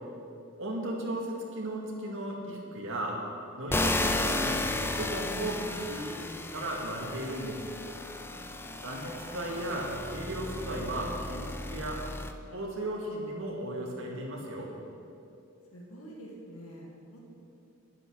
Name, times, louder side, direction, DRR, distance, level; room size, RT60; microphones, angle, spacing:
voice 1, 0.6-3.2 3.6-7.6 8.8-12.1 12.5-14.7, right 1 dB, 65° right, -2 dB, 2.2 m, -36 dB
sound 1, 3.7-12.3, left 2 dB, 10° left, 0.4 m, -34 dB
voice 2, 8.2-8.8 15.7-17.3, right 1 dB, 85° left, -2 dB, 1.9 m, -48 dB
10.5 x 9.6 x 6.3 m, 2.6 s
head